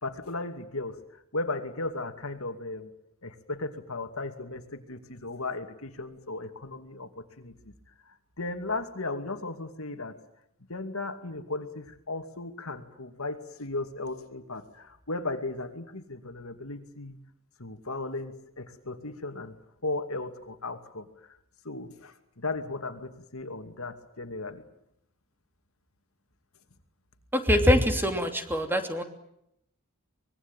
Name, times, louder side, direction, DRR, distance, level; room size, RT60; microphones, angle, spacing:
voice 1, 0.0-2.9 3.2-7.7 8.0-10.2 10.7-17.2 17.6-19.5 19.8-21.4 21.6-24.6, left 2 dB, 85° left, 7 dB, 2.6 m, -36 dB
voice 2, 27.3-29.0, equal, 10° right, 6 dB, 2.9 m, -23 dB
25.0 x 21.5 x 9.1 m, 0.77 s
head